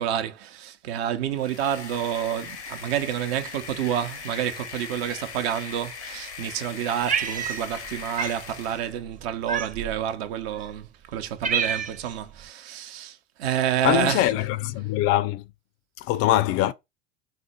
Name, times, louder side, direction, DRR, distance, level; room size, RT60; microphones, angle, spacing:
voice 1, 0.0-14.3, right 10 dB, 65° right, 0.8 m, -29 dB
sound 1, 1.2-9.0, left 5 dB, 85° left, 0.8 m, -39 dB
Cat, 7.1-7.9 8.2-8.4 9.5-10.0 10.7-10.8 11.1-12.1, right 6 dB, 25° right, 0.7 m, -28 dB
voice 2, 13.8-15.4 16.0-16.7, left 14 dB, 45° left, 0.4 m, -23 dB
4.2 x 2.1 x 4.1 m
hypercardioid pair, 75°, 33 cm